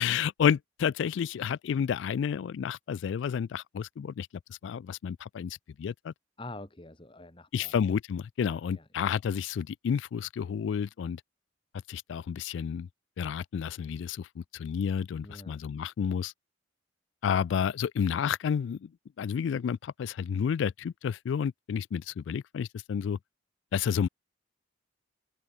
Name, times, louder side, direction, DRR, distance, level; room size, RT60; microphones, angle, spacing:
voice 1, 0.0-6.1 7.5-11.2 11.9-12.9 13.2-16.3 17.2-18.9 19.2-23.2 23.7-24.1, left 7 dB, 70° left, 0.3 m, -30 dB
voice 2, 6.4-7.7 8.4-8.9 15.2-15.6, left 2 dB, 25° left, 1.7 m, -46 dB
open air
head